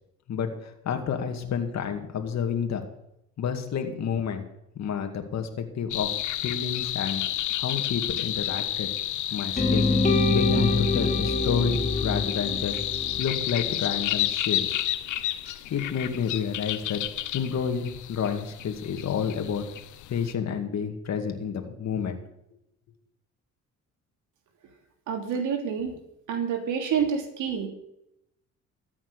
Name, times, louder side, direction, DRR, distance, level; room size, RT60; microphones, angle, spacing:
voice 1, 0.3-2.8 3.4-4.5 4.8-6.1 6.4-7.2 7.6-8.9 9.3-9.9 10.3-12.8 13.2-14.8 15.7-17.0 17.3-19.7 20.1-22.2, left 7 dB, 60° left, 5 dB, 2.2 m, -29 dB
sound 1, 5.9-20.3, left 13 dB, 75° left, 0.9 m, -31 dB
sound 2, 9.6-13.6, left 2 dB, 25° left, 3.8 m, -25 dB
voice 2, 25.1-26.0 26.3-27.7, right 7 dB, 85° right, 4 dB, 3.1 m, -28 dB
14.0 x 8.8 x 6.8 m, 0.81 s
cardioid pair, 90°, 30 cm